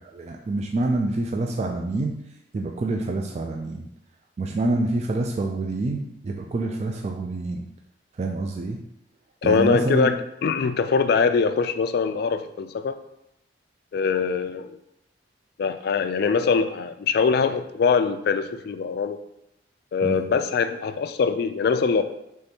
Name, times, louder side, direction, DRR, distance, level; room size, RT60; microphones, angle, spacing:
voice 1, 0.1-2.2 2.5-3.9 4.4-7.6 8.2-8.8 9.4-10.1 20.0-20.2, right 2 dB, 35° right, 2 dB, 0.3 m, -26 dB
voice 2, 9.4-13.0 13.9-14.7 15.6-19.2 19.9-22.0, left 5 dB, 60° left, 11 dB, 0.3 m, -23 dB
5.1 x 3.4 x 2.8 m, 0.82 s
head